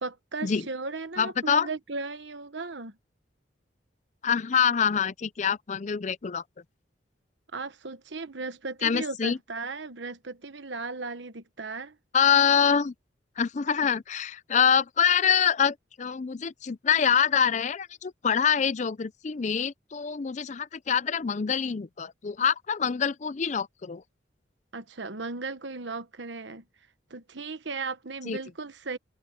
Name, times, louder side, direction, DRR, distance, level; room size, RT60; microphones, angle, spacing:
voice 1, 0.0-2.9 7.5-12.0 24.7-26.6 27.1-29.0, right 3 dB, 80° right, 1.2 m, -36 dB
voice 2, 1.2-1.7 4.2-6.4 8.8-9.4 12.1-12.9 13.4-24.0 28.3-28.4, left 7 dB, 40° left, 0.5 m, -25 dB
head